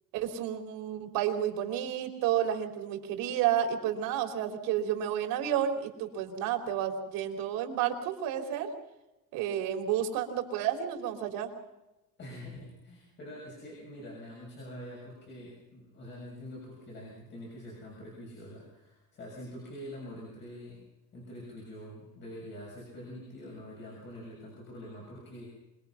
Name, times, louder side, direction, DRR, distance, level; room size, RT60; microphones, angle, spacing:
voice 1, 0.1-8.7 9.3-11.5, right 10 dB, 75° right, 3 dB, 3.8 m, -31 dB
voice 2, 12.2-20.8 21.1-25.5, equal, 30° left, -2 dB, 6.7 m, -45 dB
26.5 x 20.5 x 5.9 m, 0.99 s
cardioid pair, 175°, 35 cm